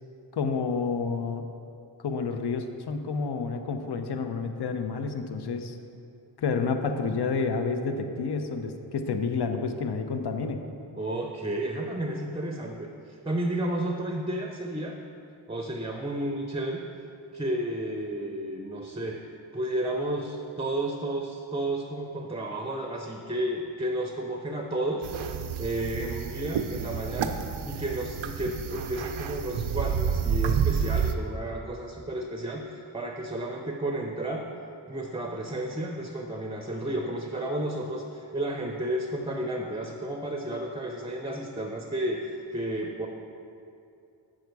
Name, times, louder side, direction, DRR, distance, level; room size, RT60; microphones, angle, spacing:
voice 1, 0.3-1.5 2.0-5.8 6.4-10.6, left 5 dB, 55° left, 7 dB, 0.7 m, -29 dB
voice 2, 11.0-15.0 15.5-16.8 17.3-19.2 19.5-25.1 25.6-27.4 27.7-34.5 34.9-43.1, right 1 dB, 10° right, 2 dB, 0.6 m, -32 dB
sound 1, 25.0-31.1, right 7 dB, 90° right, 0.6 m, -29 dB
7.3 x 6.4 x 4.7 m, 2.6 s
cardioid pair, 60°, 47 cm